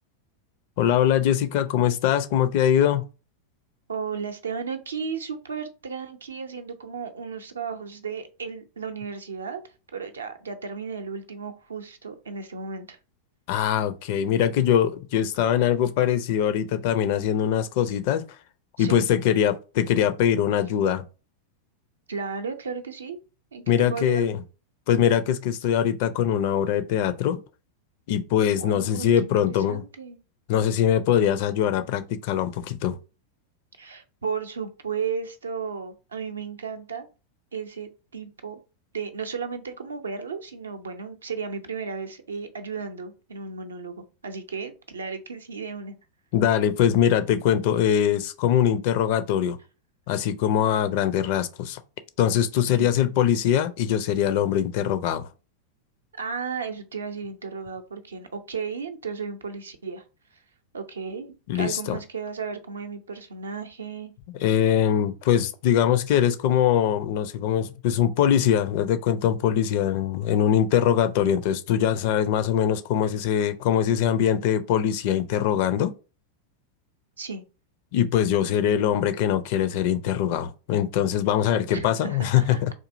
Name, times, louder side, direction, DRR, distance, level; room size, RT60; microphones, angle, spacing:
voice 1, 0.8-3.0 13.5-18.2 18.8-21.0 23.7-24.3 24.9-27.4 28.1-29.8 30.5-33.0 46.3-49.6 50.1-51.8 52.2-55.3 61.5-62.0 64.4-75.9 77.9-82.7, left 9 dB, 50° left, 0.4 m, -22 dB
voice 2, 3.9-9.6 9.9-13.0 18.8-19.0 22.1-23.2 23.5-24.3 28.6-30.2 33.8-37.1 37.5-38.6 38.9-46.0 52.8-52.9 56.2-60.0 60.7-64.1 77.2-77.4 81.7-82.6, right 5 dB, 70° right, 0.5 m, -34 dB
3.8 x 2.6 x 2.5 m
figure-of-eight pair, 90°, 0 cm